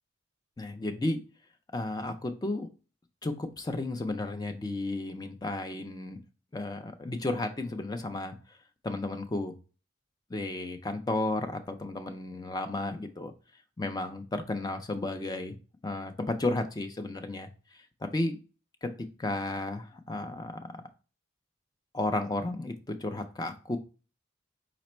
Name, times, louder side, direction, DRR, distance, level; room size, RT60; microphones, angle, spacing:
voice 1, 0.6-1.2 1.7-2.7 3.2-6.2 6.5-8.6 8.8-9.6 10.3-13.3 13.8-15.5 15.8-18.4 18.8-18.9 19.2-20.5 21.9-23.8, left 2 dB, 20° left, 7 dB, 0.4 m, -33 dB
5.0 x 2.1 x 4.2 m, 0.35 s
head